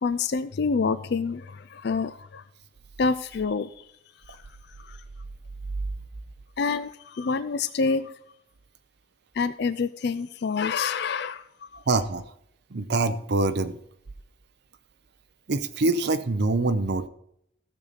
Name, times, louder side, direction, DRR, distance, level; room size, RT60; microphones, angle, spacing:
voice 1, 0.0-2.4 3.0-3.9 4.3-4.4 4.8-5.0 6.6-8.1 9.3-11.4 11.7-11.8, left 4 dB, 55° left, 13 dB, 0.4 m, -27 dB
voice 2, 11.9-12.2 12.7-13.8 15.5-17.1, right 3 dB, 55° right, 9 dB, 0.6 m, -24 dB
15.5 x 6.6 x 4.1 m, 0.75 s
head